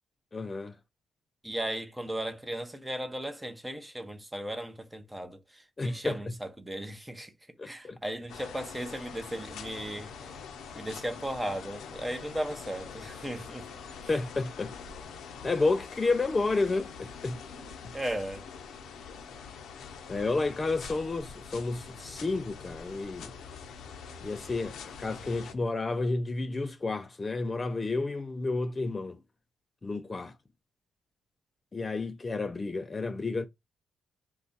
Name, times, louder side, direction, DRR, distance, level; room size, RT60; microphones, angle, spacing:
voice 1, 0.3-0.8 5.8-6.2 7.6-8.0 14.1-14.7 15.4-17.4 20.1-23.3 24.2-29.2 29.8-30.3 31.7-33.5, left 3 dB, 25° left, 0.3 m, -31 dB
voice 2, 1.4-7.3 7.6-10.4 10.7-13.8 17.9-18.5, right 1 dB, 10° right, 0.6 m, -36 dB
sound 1, 8.3-25.5, left 6 dB, 75° left, 0.5 m, -44 dB
2.5 x 2.2 x 3.8 m
cardioid pair, 90°, 0 cm